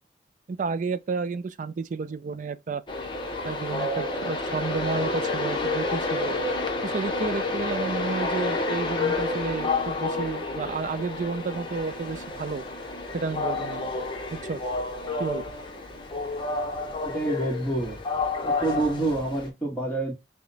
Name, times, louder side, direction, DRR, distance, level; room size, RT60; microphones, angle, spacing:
voice 1, 0.5-2.8 3.4-6.3 6.8-12.6 13.1-13.9 14.3-14.6 15.2-15.5, right 4 dB, 45° right, 0.4 m, -31 dB
Train, 2.9-19.5, left 3 dB, 30° left, 0.8 m, -30 dB
voice 2, 17.0-18.0 18.4-20.1, right 2 dB, 10° left, 1.4 m, -27 dB
4.8 x 2.2 x 3.9 m
head